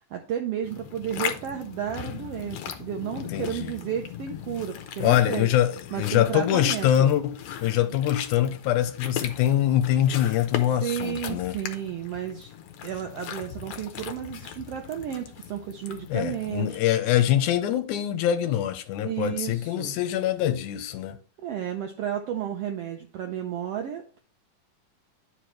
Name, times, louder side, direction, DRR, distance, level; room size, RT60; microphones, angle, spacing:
voice 1, 0.0-5.5 5.9-7.1 10.8-12.5 12.8-16.8 19.0-20.0 21.4-24.2, right 9 dB, 80° right, 1.4 m, -32 dB
sound 1, 0.6-16.8, left 9 dB, 70° left, 1.8 m, -38 dB
voice 2, 3.2-3.8 5.0-11.6 16.1-21.2, left 11 dB, 85° left, 2.1 m, -24 dB
10.0 x 5.0 x 3.1 m
omnidirectional pair, 3.5 m